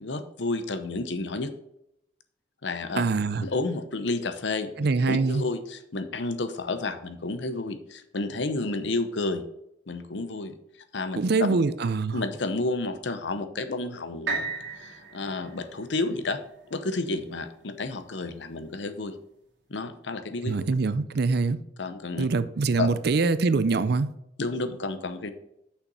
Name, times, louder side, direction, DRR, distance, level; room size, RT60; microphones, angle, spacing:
voice 1, 0.0-1.5 2.6-3.0 3.4-4.7 5.1-9.4 9.9-10.5 10.9-11.2 12.1-14.4 14.8-16.4 16.7-19.2 19.7-20.6 21.8-22.3 22.8-22.9 24.4-25.3, left 3 dB, 75° left, 0.8 m, -31 dB
voice 2, 3.0-3.4 4.8-5.5 11.2-12.2 20.4-21.6 22.2-24.1, right 4 dB, 60° right, 0.5 m, -24 dB
sound 1, 14.3-18.2 18.8-18.9, right 3 dB, 75° right, 2.3 m, -36 dB
6.6 x 5.7 x 5.4 m
head